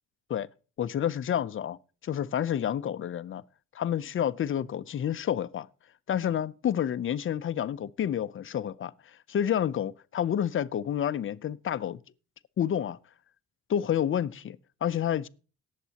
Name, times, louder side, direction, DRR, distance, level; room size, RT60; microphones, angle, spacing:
voice 1, 0.8-3.4 3.7-5.7 6.1-12.0 12.6-13.0 13.7-15.3, left 9 dB, 45° left, 0.6 m, -29 dB
18.5 x 7.4 x 2.9 m
cardioid pair, 90°, 30 cm